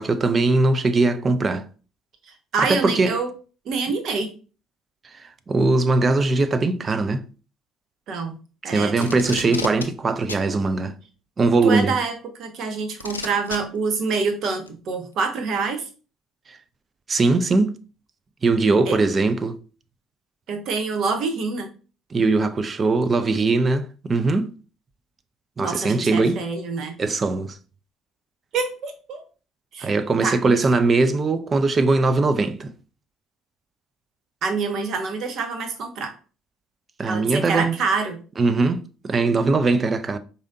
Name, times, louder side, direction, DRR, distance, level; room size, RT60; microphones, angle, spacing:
voice 1, 0.0-1.7 2.6-3.2 5.5-7.3 8.7-10.9 11.4-11.9 16.5-16.6 17.1-17.8 18.4-19.6 22.1-24.5 25.6-26.4 27.0-27.6 29.8-32.7 37.0-37.8 38.4-40.2, right 3 dB, 30° right, 0.4 m, -20 dB
voice 2, 2.5-3.3 3.6-4.3 8.1-8.4 8.6-8.9 9.4-9.5 11.6-15.9 18.9-19.0 20.5-21.7 25.6-27.0 28.5-29.2 29.7-29.9 30.2-30.6 34.4-36.1 37.0-38.2, right 4 dB, 55° right, 0.8 m, -26 dB
Packing tape duct tape, 9.0-9.9 10.3-10.5 11.8-11.9 13.0-13.6 14.7-14.8, left 4 dB, 85° left, 0.3 m, -31 dB
4.8 x 2.7 x 2.6 m
figure-of-eight pair, 55°, 0 cm